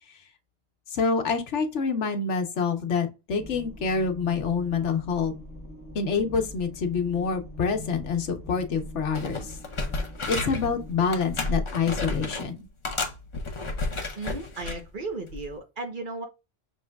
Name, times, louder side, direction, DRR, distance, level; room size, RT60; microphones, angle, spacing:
voice 1, 0.9-5.4 5.9-9.6 10.3-12.6, left 5 dB, 85° left, 1.2 m, -27 dB
sound 1, 3.4-11.6, left 1 dB, 10° right, 1.1 m, -43 dB
sound 2, 8.7-8.9 9.1-10.7 11.1-12.5 12.8-14.8 15.3-15.5, left 2 dB, 30° left, 0.7 m, -31 dB
voice 2, 14.2-16.3, right 3 dB, 50° right, 1.0 m, -35 dB
6.3 x 3.2 x 2.3 m
omnidirectional pair, 1.2 m